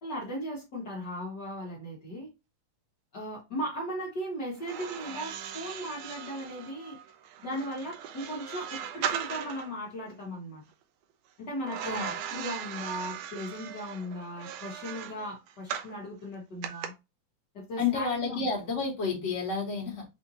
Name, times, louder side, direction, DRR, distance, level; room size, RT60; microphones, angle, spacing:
voice 1, 0.0-2.3 3.1-7.0 7.4-10.6 11.4-12.0 12.3-16.9 17.5-18.5, equal, 70° left, 1.0 m, -37 dB
sound 1, 4.6-9.7 11.7-16.0 16.6-16.9, right 9 dB, 80° right, 1.9 m, -38 dB
voice 2, 11.8-12.1 17.8-20.1, left 4 dB, 40° left, 1.0 m, -30 dB
5.9 x 2.7 x 2.7 m
omnidirectional pair, 4.3 m